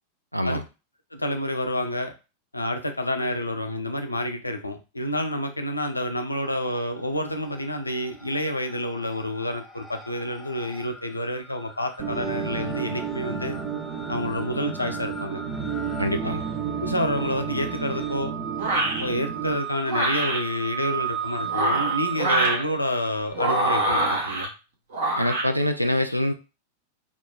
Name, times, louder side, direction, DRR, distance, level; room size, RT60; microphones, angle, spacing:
voice 1, 0.3-0.6 16.0-16.4 25.2-26.3, left 1 dB, 90° right, 7 dB, 0.3 m, -24 dB
voice 2, 1.1-2.1 2.5-13.6 14.1-15.4 16.8-18.3 19.0-24.5, left 1 dB, 85° left, 5 dB, 0.4 m, -29 dB
sound 1, 6.3-7.0 7.3-23.9, right 7 dB, 10° left, 0.4 m, -37 dB
sound 2, 12.0-19.6, right 6 dB, 30° right, 0.6 m, -32 dB
sound 3, 18.6-19.0 19.9-20.4 21.4-22.6 23.3-24.5 24.9-25.5, right 2 dB, 55° right, 0.9 m, -24 dB
3.0 x 2.2 x 2.2 m, 0.30 s
figure-of-eight pair, 90°, 0 cm